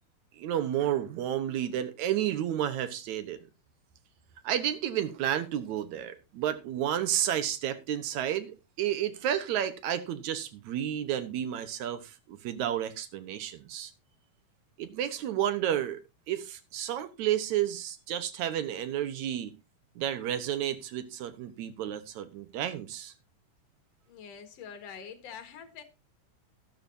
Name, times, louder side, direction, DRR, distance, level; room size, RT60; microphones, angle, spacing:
voice 1, 0.4-3.4 4.4-8.5 8.8-12.0 12.3-13.9 14.8-16.0 16.3-19.5 20.0-23.1, right 10 dB, 65° right, 2.2 m, -31 dB
voice 2, 24.1-25.8, left 7 dB, 55° left, 2.5 m, -45 dB
12.5 x 12.0 x 2.7 m
omnidirectional pair, 3.9 m